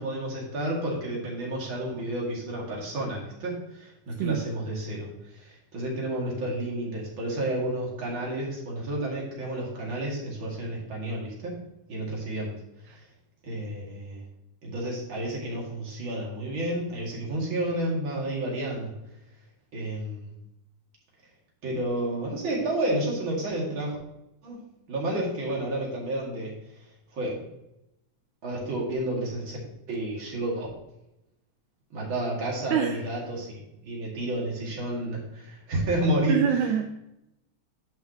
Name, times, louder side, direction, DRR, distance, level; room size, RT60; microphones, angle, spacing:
voice 1, 0.0-5.1 5.4-11.6 11.9-12.5 13.4-14.2 14.6-18.9 19.7-20.3 21.6-24.0 24.4-24.6 24.9-26.5 27.1-27.4 28.4-29.6 29.9-30.7 31.9-36.4, right 1 dB, 45° right, -3 dB, 2.9 m, -30 dB
voice 2, 32.7-33.0 36.3-36.9, right 8 dB, 80° right, 4 dB, 2.0 m, -25 dB
11.5 x 5.6 x 3.0 m, 0.86 s
omnidirectional pair, 3.4 m